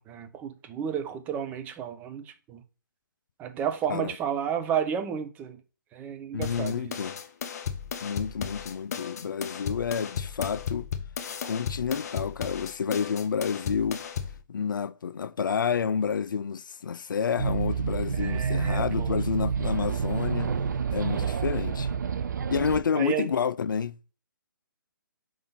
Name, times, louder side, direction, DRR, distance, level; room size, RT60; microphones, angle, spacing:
voice 1, 0.0-2.6 3.4-5.6 5.9-7.0 18.1-19.2 23.0-23.3, right 8 dB, 15° right, 0.7 m, -32 dB
voice 2, 6.3-7.2 8.0-10.9 11.4-14.0 14.5-20.5 20.9-21.9 22.5-24.0, left 6 dB, 70° left, 0.4 m, -29 dB
sound 1, 6.4-14.4, left 7 dB, 50° left, 0.9 m, -35 dB
sound 2, 17.4-22.8, right 6 dB, 60° right, 0.6 m, -28 dB
5.1 x 3.8 x 5.6 m
figure-of-eight pair, 140°, 11 cm